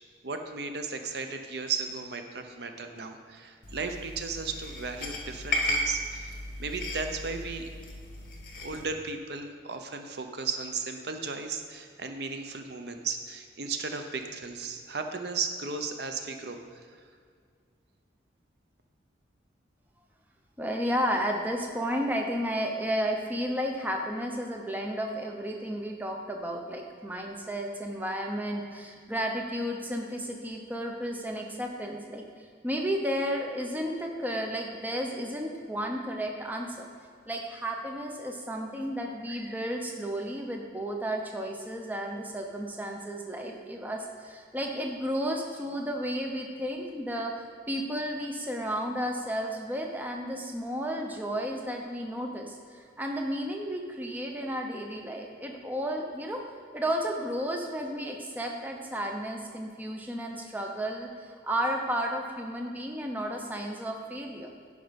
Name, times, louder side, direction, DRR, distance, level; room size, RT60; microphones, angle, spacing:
voice 1, 0.2-7.6 8.6-16.6, right 4 dB, 60° right, 6 dB, 0.7 m, -35 dB
sound 1, 3.6-8.8, left 1 dB, 45° left, 1.3 m, -35 dB
voice 2, 20.6-36.9 37.3-56.4 56.7-64.5, equal, 10° right, 1 dB, 0.7 m, -33 dB
10.5 x 5.0 x 5.2 m, 2.1 s
head